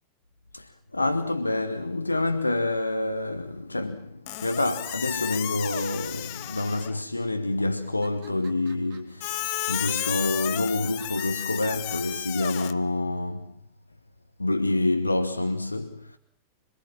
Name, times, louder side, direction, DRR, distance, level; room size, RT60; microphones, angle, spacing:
voice 1, 0.5-13.6 14.4-16.2, left 2 dB, 85° left, 1.0 m, -27 dB
Squeak, 4.3-7.0 9.2-12.7, left 14 dB, 50° left, 1.1 m, -33 dB
sound 1, 4.9-6.1 6.8-7.3 7.8-12.2, right 6 dB, 50° right, 4.0 m, -53 dB
26.5 x 21.0 x 7.4 m
figure-of-eight pair, 90°, 0 cm